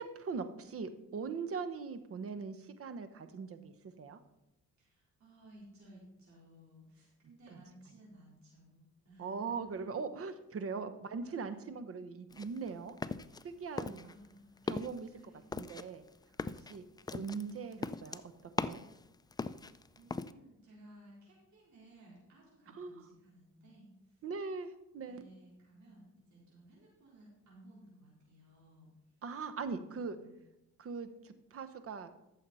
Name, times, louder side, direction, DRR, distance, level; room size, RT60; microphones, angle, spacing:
voice 1, 0.0-4.2 7.5-7.6 9.2-12.9 13.4-14.1 14.6-15.1 15.5-16.0 16.7-16.8 17.1-18.8 22.7-23.1 24.2-25.2 29.2-30.2 30.8-32.1, right 5 dB, 50° right, 11 dB, 1.0 m, -41 dB
voice 2, 4.8-9.8 11.3-11.6 13.7-14.7 15.2-15.6 20.0-24.2 25.0-28.9 29.8-30.3, right 1 dB, 65° right, -5 dB, 4.1 m, -58 dB
sound 1, 12.3-13.5 13.8-14.3 14.6-15.0 15.5-19.0 19.3-20.3, left 4 dB, 15° left, 0.4 m, -39 dB
13.5 x 7.1 x 4.2 m, 0.91 s
cardioid pair, 90°, 30 cm